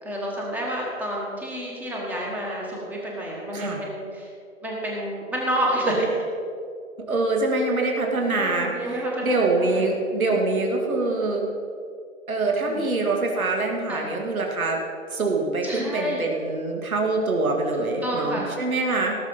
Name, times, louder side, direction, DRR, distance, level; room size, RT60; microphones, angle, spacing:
voice 1, 0.0-4.3 4.6-6.2 8.3-9.9 10.3-10.4 12.6-12.9 13.9-14.1 15.6-16.2 18.0-18.5, right 1 dB, 5° right, -3 dB, 1.3 m, -29 dB
voice 2, 7.1-11.4 12.3-14.8 15.1-19.2, right 3 dB, 85° right, 1 dB, 2.5 m, -24 dB
17.5 x 6.8 x 5.3 m, 2.3 s
hypercardioid pair, 155°, 42 cm